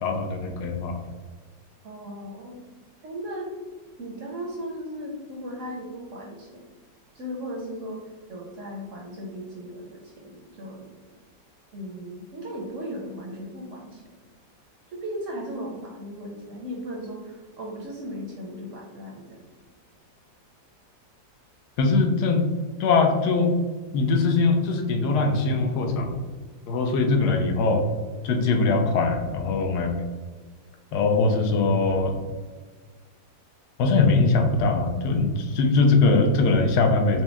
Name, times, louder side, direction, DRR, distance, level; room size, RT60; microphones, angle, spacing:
voice 1, 0.0-1.0 21.8-22.4 22.8-23.5 23.9-26.2 26.7-27.8 28.2-29.9 30.9-32.2 33.8-37.2, left 3 dB, 75° left, 4 dB, 1.1 m, -21 dB
voice 2, 1.8-2.6 3.0-3.5 4.0-6.6 7.1-10.9 11.7-14.0 14.9-19.4, equal, 65° right, -1 dB, 0.8 m, -36 dB
4.4 x 2.2 x 3.3 m, 1.4 s
omnidirectional pair, 1.8 m